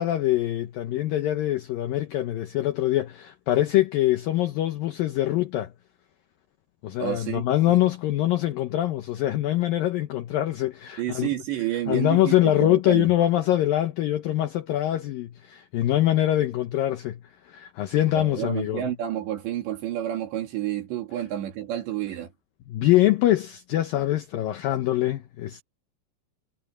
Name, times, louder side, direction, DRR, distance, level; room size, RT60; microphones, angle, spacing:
voice 1, 0.0-5.7 6.8-11.3 11.9-17.2 17.4-18.9 22.7-25.6, left 14 dB, 75° left, 2.2 m, -24 dB
voice 2, 7.0-7.8 11.0-13.1 18.1-22.3, right 12 dB, 80° right, 4.8 m, -30 dB
omnidirectional pair, 5.0 m